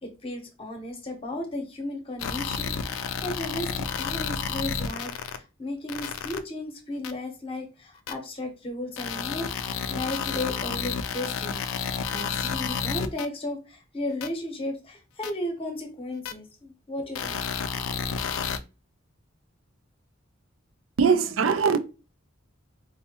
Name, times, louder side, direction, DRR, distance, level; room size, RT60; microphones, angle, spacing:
voice 1, 0.0-9.5 9.9-17.4, left 1 dB, 30° left, 0.8 m, -35 dB
sound 1, 2.2-5.4 5.9-6.4 7.0-7.1 8.1-8.2 9.0-13.3 14.2-14.3 15.2-15.3 16.3-16.4 17.1-18.6, left 6 dB, 80° left, 0.3 m, -31 dB
voice 2, 21.0-21.8, right 6 dB, 70° right, 0.4 m, -21 dB
4.2 x 2.1 x 2.9 m
head